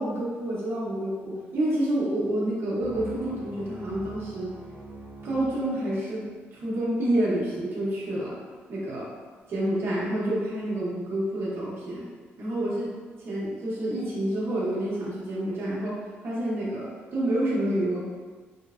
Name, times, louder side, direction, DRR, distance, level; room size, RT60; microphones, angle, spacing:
voice 1, 0.0-4.5 5.2-8.4 8.7-9.1 9.5-12.1 12.4-12.9 13.2-18.0, right 1 dB, 60° right, -6 dB, 0.9 m, -28 dB
sound 1, 2.8-6.4, right 2 dB, 20° right, 0.9 m, -43 dB
3.2 x 2.1 x 2.4 m, 1.4 s
cardioid pair, 125°, 5 cm